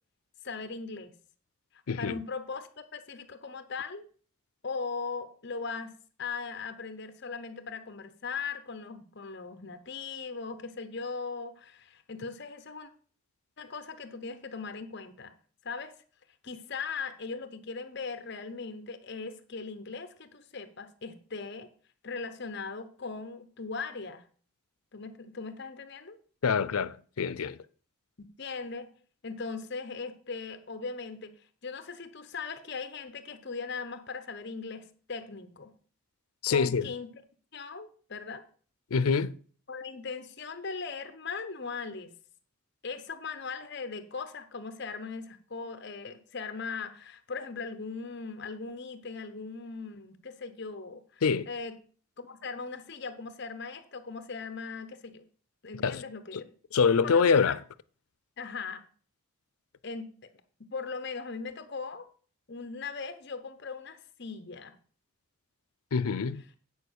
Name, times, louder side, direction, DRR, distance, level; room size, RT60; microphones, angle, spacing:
voice 1, 0.4-1.2 2.0-4.1 4.6-12.9 13.6-15.3 15.6-15.9 16.4-21.7 22.0-24.2 24.9-26.2 28.2-28.9 29.2-31.4 31.6-35.7 36.5-37.2 37.5-38.4 39.7-42.1 42.8-51.8 52.2-55.3 55.6-56.5 57.0-57.6 58.4-58.9 59.8-60.3 60.6-62.1 62.5-64.8, left 4 dB, 50° left, 1.0 m, -39 dB
voice 2, 1.9-2.2 26.4-27.6 36.4-36.9 38.9-39.3 51.2-51.5 55.8-56.0 56.3-56.4 56.7-57.6 65.9-66.4, left 5 dB, 90° left, 0.5 m, -25 dB
9.3 x 5.0 x 6.4 m
head